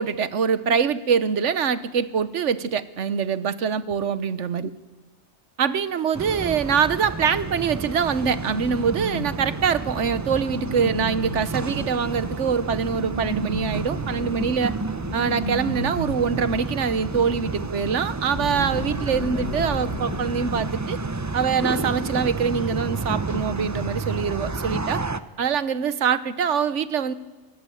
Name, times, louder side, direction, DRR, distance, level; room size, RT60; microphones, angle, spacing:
voice 1, 0.0-4.7 5.6-14.8 15.1-21.0 21.3-25.0 25.4-27.1, right 6 dB, 80° right, 15 dB, 1.3 m, -24 dB
sound 1, 6.1-25.2, right 3 dB, 20° right, 0.5 m, -31 dB
sound 2, 7.2-16.3, right 1 dB, 55° left, 7.6 m, -34 dB
sound 3, 18.3-23.4, left 4 dB, 40° left, 1.2 m, -37 dB
24.0 x 15.0 x 9.4 m, 1.2 s
omnidirectional pair, 1.2 m